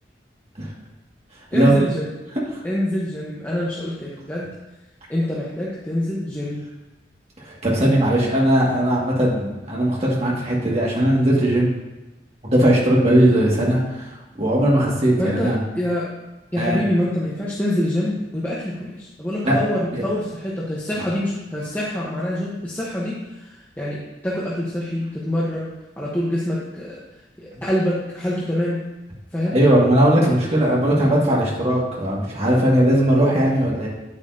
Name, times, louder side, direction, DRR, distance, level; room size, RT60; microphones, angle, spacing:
voice 1, 1.5-2.1 2.6-4.5 5.1-6.6 15.2-16.1 16.5-23.2 23.8-27.0 27.4-28.8 29.3-29.6, left 1 dB, 10° left, -7 dB, 1.0 m, -25 dB
voice 2, 7.4-11.7 12.4-14.1 14.4-15.6 16.6-16.8 19.4-19.6 19.9-20.0 20.9-21.0 29.5-33.9, right 1 dB, 35° right, -4 dB, 1.9 m, -18 dB
8.8 x 8.5 x 2.8 m, 1.0 s
head